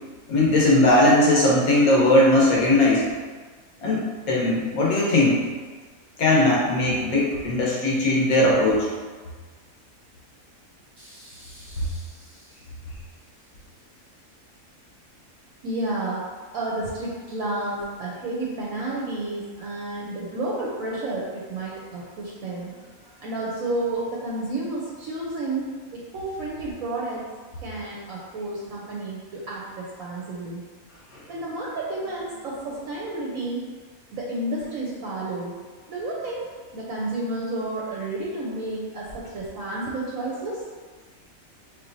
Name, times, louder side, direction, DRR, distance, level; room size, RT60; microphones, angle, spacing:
voice 1, 0.3-3.0 3.8-4.0 4.3-5.4 6.2-8.9, left 1 dB, 75° left, -4 dB, 1.4 m, -19 dB
voice 2, 11.0-12.5 15.6-16.2 16.5-27.2 27.6-30.6 31.3-33.7 34.1-35.5 35.9-36.5 36.7-40.6, right 2 dB, 70° right, -4 dB, 1.0 m, -31 dB
4.7 x 2.9 x 2.6 m, 1.4 s
omnidirectional pair, 1.5 m